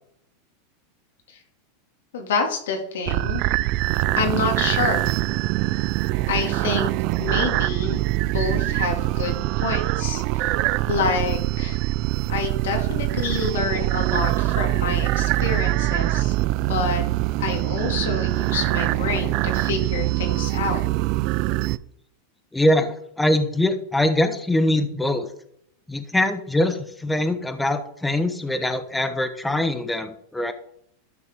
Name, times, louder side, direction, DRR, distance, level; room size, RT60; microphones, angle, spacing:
voice 1, 2.1-3.4 4.1-5.0 6.3-6.9 7.2-10.5 10.9-11.8 12.3-16.3 16.6-17.0 17.4-20.8, left 4 dB, 85° left, 3 dB, 2.3 m, -27 dB
sound 1, 3.1-21.8, right 19 dB, 50° right, 0.3 m, -23 dB
voice 2, 22.5-25.3 25.9-30.5, left 1 dB, 5° left, 9 dB, 1.0 m, -23 dB
12.5 x 5.8 x 3.6 m, 0.71 s
supercardioid pair, 135°, 0 cm